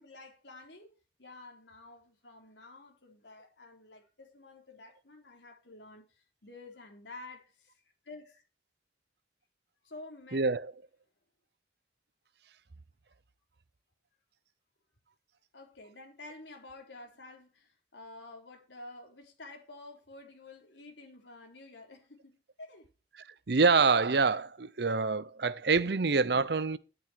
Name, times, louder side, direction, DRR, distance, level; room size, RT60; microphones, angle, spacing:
voice 1, 0.0-8.4 9.8-10.4 15.5-22.9, left 2 dB, 75° left, 3.7 m, -50 dB
voice 2, 10.3-10.7 23.5-26.8, right 4 dB, 65° right, 0.7 m, -26 dB
9.8 x 9.4 x 4.5 m
head